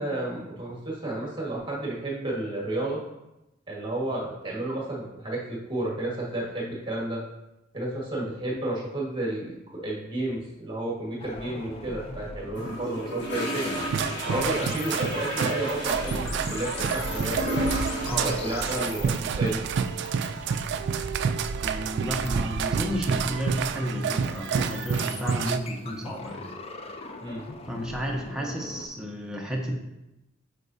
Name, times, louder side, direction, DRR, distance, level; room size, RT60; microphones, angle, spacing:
voice 1, 0.0-3.0 3.7-7.2 7.7-13.7 14.2-17.4 18.2-19.6 27.2-27.4, right 1 dB, 25° right, -4 dB, 1.5 m, -31 dB
sound 1, 11.2-28.9, left 3 dB, 30° left, 0.5 m, -42 dB
sound 2, 12.6-20.6, left 1 dB, 60° left, 2.0 m, -35 dB
sound 3, 13.7-25.6, right 6 dB, 60° right, 0.3 m, -29 dB
voice 2, 21.6-26.5 27.7-29.7, equal, 5° right, -1 dB, 0.7 m, -32 dB
8.2 x 4.5 x 2.7 m, 0.94 s
head